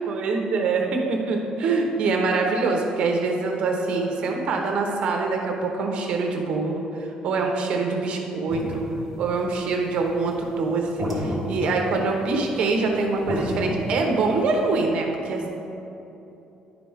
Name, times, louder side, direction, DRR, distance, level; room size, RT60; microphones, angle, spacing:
voice 1, 0.1-8.8 9.2-15.5, right 3 dB, 50° right, 2 dB, 0.9 m, -24 dB
sound 1, 8.5-14.8, equal, 5° left, 1.4 m, -31 dB
10.5 x 5.0 x 3.5 m, 2.9 s
cardioid pair, 175°, 2 cm